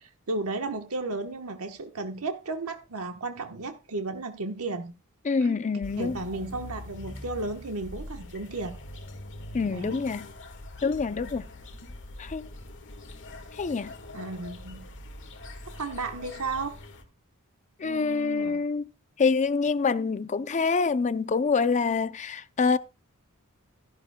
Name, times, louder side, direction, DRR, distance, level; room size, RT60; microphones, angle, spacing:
voice 1, 0.0-4.9 5.4-5.5 6.0-8.7 9.7-10.0 14.1-14.8 15.8-16.8 17.8-18.6, right 3 dB, 75° right, 1.1 m, -34 dB
voice 2, 5.3-6.2 9.5-10.3 10.8-11.4 12.2-12.5 13.6-13.9 17.8-18.9 19.2-22.8, left 4 dB, 35° left, 0.5 m, -26 dB
sound 1, 5.8-17.0, left 1 dB, 55° left, 1.5 m, -43 dB
14.0 x 11.0 x 2.2 m
head